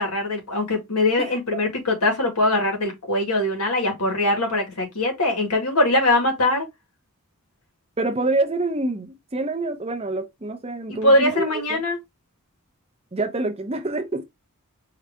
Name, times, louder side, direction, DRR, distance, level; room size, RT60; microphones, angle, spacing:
voice 1, 0.0-6.7 10.9-12.0, left 1 dB, 90° left, 1.8 m, -22 dB
voice 2, 8.0-11.8 13.1-14.2, right 2 dB, 25° right, 0.7 m, -26 dB
4.8 x 2.6 x 3.4 m
head